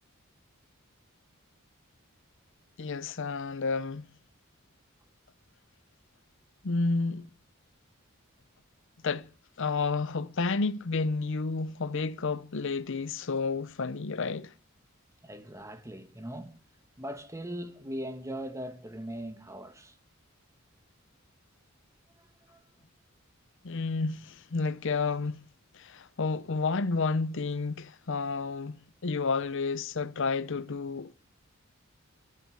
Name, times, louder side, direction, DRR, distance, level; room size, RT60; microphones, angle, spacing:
voice 1, 2.8-4.0 6.6-7.2 9.0-9.3 9.6-14.5 23.6-25.4 25.7-28.8 29.0-31.1, left 4 dB, 60° left, 0.7 m, -30 dB
voice 2, 15.2-16.6 17.0-20.0 22.2-22.7, equal, 15° right, 1.4 m, -40 dB
14.5 x 11.0 x 7.7 m
head